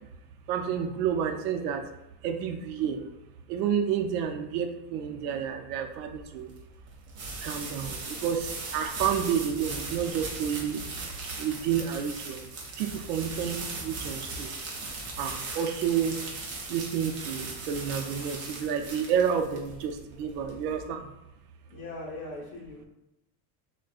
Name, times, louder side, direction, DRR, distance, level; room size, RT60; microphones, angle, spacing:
voice 1, 0.5-1.8 2.2-3.0 3.5-6.5 7.4-10.8 11.4-12.4 12.8-14.5 15.2-16.2 16.7-21.0, right 8 dB, 85° right, 6 dB, 0.7 m, -30 dB
sound 1, 6.0-20.9, right 3 dB, 30° right, 0.3 m, -38 dB
voice 2, 21.7-22.9, left 2 dB, 45° left, -3 dB, 1.1 m, -40 dB
6.0 x 2.2 x 2.4 m, 0.90 s
cardioid pair, 180°, 46 cm